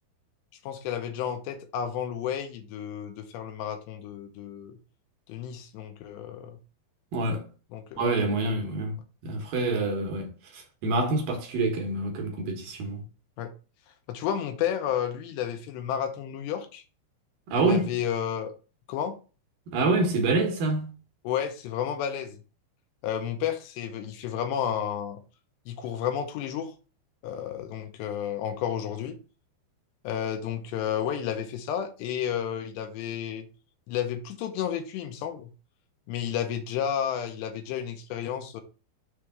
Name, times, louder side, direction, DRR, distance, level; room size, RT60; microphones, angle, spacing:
voice 1, 0.6-4.8 5.3-6.6 7.7-8.0 13.4-13.5 14.1-16.8 17.5-18.5 18.9-19.2 21.2-22.4 23.0-25.2 25.7-26.7 27.2-29.2 30.0-33.5 33.9-35.5 36.1-38.6, left 9 dB, 80° left, 2.8 m, -31 dB
voice 2, 7.1-7.4 8.0-9.0 9.2-13.0 17.5-17.9 19.7-20.9, right 2 dB, 70° right, 2.3 m, -26 dB
7.0 x 3.3 x 6.0 m
omnidirectional pair, 5.4 m